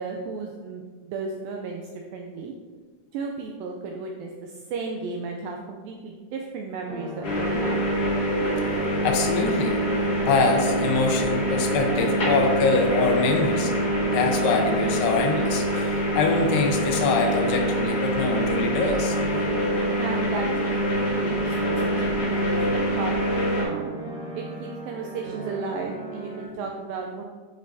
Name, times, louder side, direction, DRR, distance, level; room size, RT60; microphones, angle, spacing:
voice 1, 0.0-1.8 2.1-2.5 3.1-7.8 20.0-22.6 22.9-23.3 23.6-23.9 24.4-27.2, right 4 dB, 85° right, 1 dB, 2.0 m, -34 dB
sound 1, 6.9-26.5, right 2 dB, 40° right, 2.4 m, -36 dB
sound 2, 7.2-23.6, equal, 45° left, 2.1 m, -25 dB
voice 2, 9.0-9.8 10.3-13.7 14.1-19.2, left 4 dB, 85° left, 3 dB, 2.9 m, -24 dB
10.5 x 5.3 x 2.7 m, 1.5 s
omnidirectional pair, 4.7 m